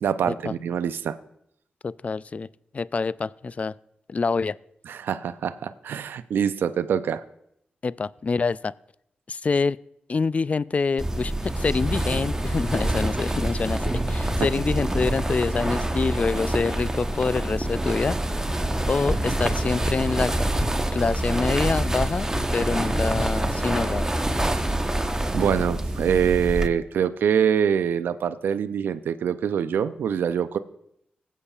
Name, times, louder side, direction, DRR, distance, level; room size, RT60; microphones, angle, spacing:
voice 1, 0.0-1.2 4.9-7.2 14.4-14.5 25.3-30.6, right 8 dB, 80° right, 12 dB, 0.4 m, -24 dB
voice 2, 1.8-2.5 2.7-3.7 4.1-4.6 7.8-8.7 9.3-9.8 10.1-18.2 18.9-20.3 20.9-24.1, left 4 dB, 40° left, 19 dB, 0.3 m, -26 dB
sound 1, 11.0-26.7, right 1 dB, 15° right, 1.0 m, -26 dB
20.0 x 8.3 x 2.4 m, 0.75 s
supercardioid pair, 45°, 3 cm